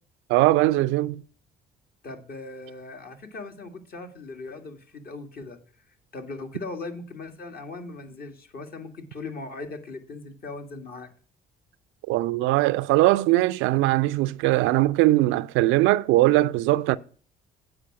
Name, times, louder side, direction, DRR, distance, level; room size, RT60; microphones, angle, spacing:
voice 1, 0.3-1.2 12.1-17.0, right 17 dB, 75° right, 0.4 m, -20 dB
voice 2, 2.0-5.6 6.1-11.1, left 3 dB, 50° left, 1.9 m, -39 dB
8.8 x 4.9 x 7.4 m
supercardioid pair, 65°, 21 cm